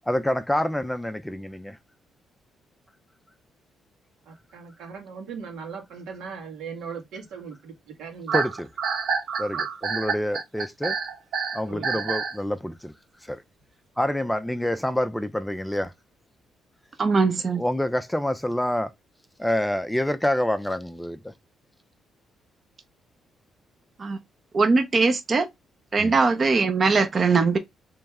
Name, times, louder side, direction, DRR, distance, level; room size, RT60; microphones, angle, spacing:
voice 1, 0.1-1.8 8.3-8.7 9.4-11.0 11.5-12.9 13.2-13.4 14.0-15.9 17.6-18.9 19.4-21.3 26.0-26.2, left 1 dB, 5° left, 0.4 m, -27 dB
voice 2, 4.2-8.5 9.5-9.7 11.7-11.9, right 5 dB, 90° right, 1.7 m, -39 dB
sound 1, 8.3-12.4, right 6 dB, 70° right, 0.9 m, -27 dB
voice 3, 17.0-17.6 24.0-24.2 24.5-25.5 25.9-27.6, right 4 dB, 40° right, 0.7 m, -21 dB
3.4 x 3.1 x 3.5 m
cardioid pair, 90°, 0 cm